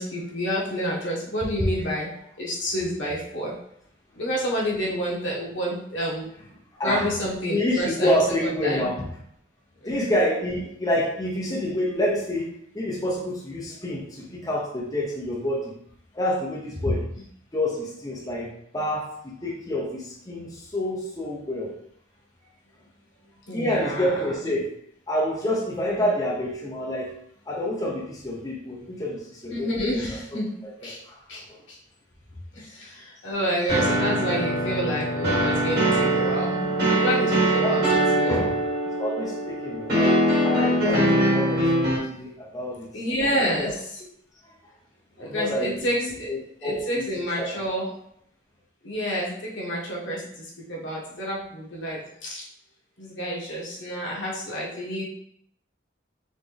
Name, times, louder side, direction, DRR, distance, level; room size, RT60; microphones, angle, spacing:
voice 1, 0.0-2.1 2.4-3.5 4.1-6.3 6.8-8.9 9.8-10.1 11.4-11.5 23.5-24.3 25.8-26.0 29.5-30.5 30.8-31.0 31.3-31.8 32.5-38.4 42.9-44.0 45.2-46.3 46.6-47.9 48.8-52.4 53.0-55.0, equal, 75° left, -4 dB, 1.4 m, -29 dB
voice 2, 6.7-7.1 7.5-9.1 9.8-15.7 16.1-17.0 17.5-21.7 23.5-24.7 25.1-27.1 27.5-29.9 30.8-31.2 37.4-37.9 38.3-38.6 39.0-42.9 43.3-43.7 44.4-44.5 45.2-47.1 47.4-47.5, left 1 dB, 20° left, -3 dB, 0.8 m, -28 dB
sound 1, 33.7-42.0, right 1 dB, 55° right, 1.8 m, -22 dB
4.2 x 3.6 x 3.3 m, 0.71 s
head